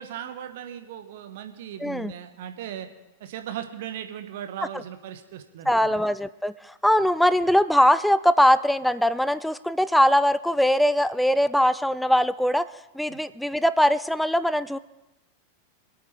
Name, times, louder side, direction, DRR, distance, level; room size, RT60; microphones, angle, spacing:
voice 1, 0.0-2.9 3.2-6.0 13.1-13.2, right 10 dB, 55° right, 7 dB, 1.2 m, -37 dB
voice 2, 1.8-2.1 5.7-14.8, equal, ahead, 16 dB, 0.4 m, -21 dB
24.5 x 8.5 x 3.4 m, 0.97 s
figure-of-eight pair, 90°, 0 cm